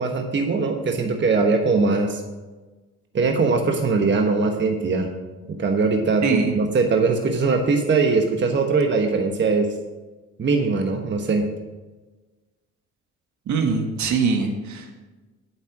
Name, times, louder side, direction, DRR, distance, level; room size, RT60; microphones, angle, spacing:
voice 1, 0.0-2.2 3.1-5.1 5.6-9.7 10.4-11.5, right 4 dB, 40° right, 3 dB, 1.2 m, -21 dB
voice 2, 6.2-6.5 13.5-15.0, right 5 dB, 70° right, 4 dB, 1.5 m, -23 dB
8.6 x 7.9 x 4.8 m, 1.2 s
cardioid pair, 90°, 30 cm